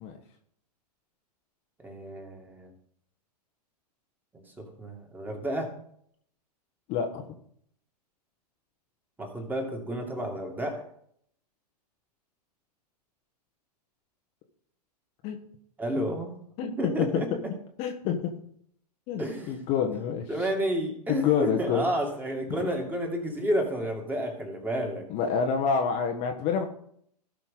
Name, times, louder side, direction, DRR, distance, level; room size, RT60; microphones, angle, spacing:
voice 1, 1.8-2.7 4.3-5.8 9.2-10.9 15.8-16.3 16.6-17.5 19.2-19.6 20.3-25.1, equal, 10° right, 2 dB, 2.3 m, -31 dB
voice 2, 6.9-7.3 15.2-15.4 16.6-16.7 17.1-17.2 17.8-18.3 19.1-20.3 21.1-21.9 25.1-26.6, left 7 dB, 30° left, 3 dB, 1.2 m, -27 dB
17.0 x 5.8 x 3.9 m, 0.64 s
figure-of-eight pair, 105°, 21 cm